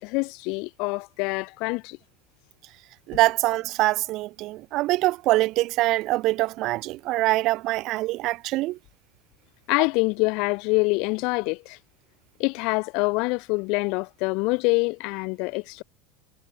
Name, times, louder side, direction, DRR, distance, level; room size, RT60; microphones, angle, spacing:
voice 1, 0.0-2.0 9.7-11.8 12.4-15.8, left 29 dB, 60° left, 2.7 m, -25 dB
voice 2, 3.1-8.8, right 18 dB, 50° right, 0.8 m, -24 dB
supercardioid pair, 140°, 0 cm